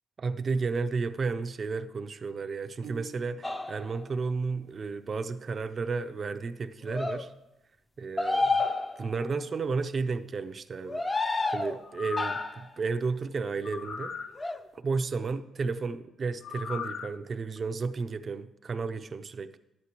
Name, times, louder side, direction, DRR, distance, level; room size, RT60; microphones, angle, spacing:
voice 1, 0.2-7.3 8.0-8.6 9.0-11.0 11.5-14.1 14.7-19.6, right 4 dB, 40° right, 9 dB, 0.5 m, -32 dB
Piano, 2.8-3.8, right 6 dB, 90° right, 0.6 m, -46 dB
sound 1, 3.4-4.0 6.9-7.2 8.2-9.3 10.8-11.8 12.2-12.7 14.4-14.6, left 3 dB, 20° left, 0.6 m, -30 dB
sound 2, 11.8-12.6 13.6-14.3 16.4-17.1 17.6-17.7, left 5 dB, 60° left, 0.6 m, -37 dB
11.0 x 9.6 x 3.0 m, 0.89 s
cardioid pair, 90°, 0 cm